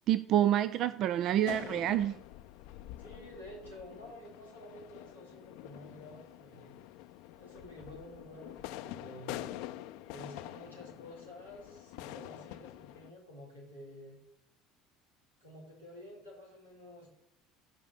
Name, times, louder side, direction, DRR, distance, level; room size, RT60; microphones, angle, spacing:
voice 1, 0.1-2.2, right 11 dB, 50° right, 15 dB, 0.5 m, -28 dB
sound 1, 1.4-13.1, left 14 dB, 60° left, 0.6 m, -46 dB
voice 2, 3.0-6.8 7.4-9.5 10.1-14.2 15.4-17.1, equal, 85° right, -4 dB, 4.4 m, -50 dB
15.5 x 5.2 x 6.7 m, 0.77 s
figure-of-eight pair, 65°, 0 cm